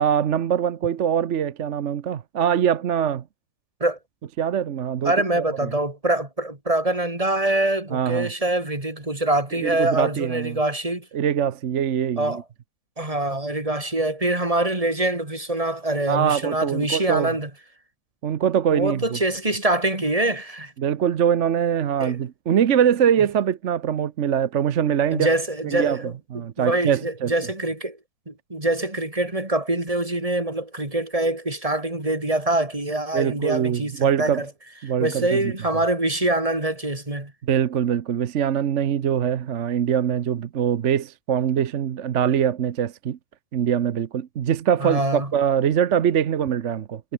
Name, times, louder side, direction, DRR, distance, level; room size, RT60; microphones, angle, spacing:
voice 1, 0.0-3.2 4.4-5.4 7.9-8.3 9.6-10.6 11.1-12.4 16.1-17.3 18.2-19.2 20.8-25.3 25.6-26.0 26.3-27.3 33.1-34.4 34.8-35.4 37.4-43.2 43.5-47.0, right 8 dB, 55° right, 1.1 m, -23 dB
voice 2, 5.0-11.1 12.2-12.4 13.0-17.5 18.7-20.7 22.0-22.2 25.1-26.1 26.6-28.0 28.3-34.5 35.0-37.3 44.8-45.3, right 1 dB, 20° right, 3.4 m, -24 dB
omnidirectional pair, 1.7 m